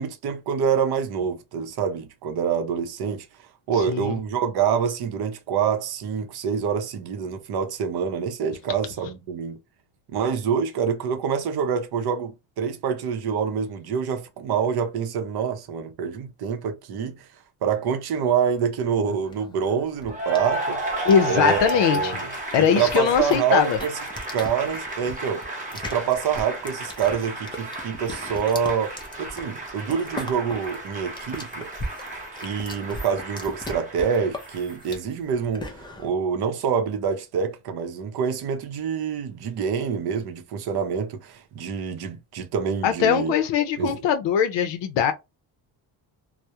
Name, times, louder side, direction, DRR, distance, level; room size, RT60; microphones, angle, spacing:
voice 1, 0.0-3.3 3.7-9.6 10.1-17.3 17.6-20.8 21.2-22.3 22.6-24.0 24.3-25.4 25.7-31.6 32.4-43.3 43.8-44.0, right 7 dB, 55° right, 0.6 m, -26 dB
sound 1, 19.0-36.1, left 1 dB, 10° left, 0.3 m, -39 dB
Cheering / Applause, 20.0-35.0, right 1 dB, 15° right, 0.9 m, -33 dB
voice 2, 21.0-22.2 22.5-23.8 42.8-45.1, left 8 dB, 70° left, 0.5 m, -21 dB
2.2 x 2.1 x 2.7 m
cardioid pair, 130°, 45 cm